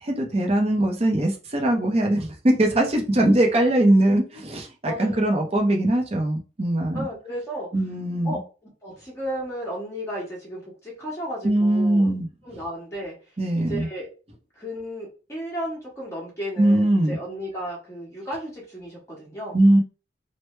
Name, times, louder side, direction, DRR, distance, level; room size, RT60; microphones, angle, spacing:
voice 1, 0.0-7.1 7.7-8.4 11.4-12.3 13.4-13.9 16.6-17.2 19.5-19.8, right 1 dB, 35° right, 2 dB, 0.6 m, -21 dB
voice 2, 4.8-5.4 6.9-7.7 8.2-8.4 8.8-12.1 12.4-13.2 13.5-14.1 14.6-19.6, equal, 15° left, -5 dB, 1.4 m, -34 dB
3.1 x 2.1 x 3.2 m, 0.34 s
head